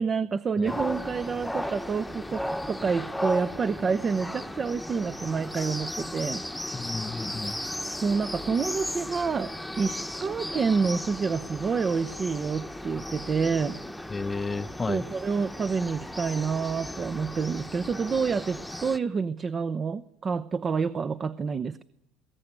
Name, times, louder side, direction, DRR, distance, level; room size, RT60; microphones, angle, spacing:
voice 1, 0.0-6.4 7.4-7.6 8.0-13.8 14.9-21.8, right 5 dB, 30° right, 0.8 m, -28 dB
sound 1, 0.6-19.0, left 1 dB, 5° left, 1.1 m, -36 dB
voice 2, 6.7-7.6 14.1-15.1, left 3 dB, 20° left, 0.8 m, -32 dB
21.0 x 17.5 x 9.0 m
supercardioid pair, 95°, 0 cm